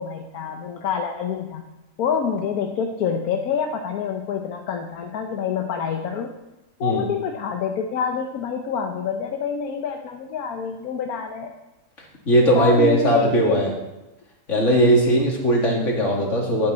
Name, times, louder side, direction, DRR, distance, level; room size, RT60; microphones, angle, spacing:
voice 1, 0.0-1.6 2.0-6.3 6.8-11.5 12.5-13.6 14.5-14.6, left 6 dB, 75° left, 4 dB, 1.3 m, -27 dB
voice 2, 12.3-13.7 14.5-16.7, right 1 dB, 50° left, -1 dB, 2.6 m, -19 dB
16.0 x 8.8 x 4.0 m, 1.0 s
omnidirectional pair, 1.6 m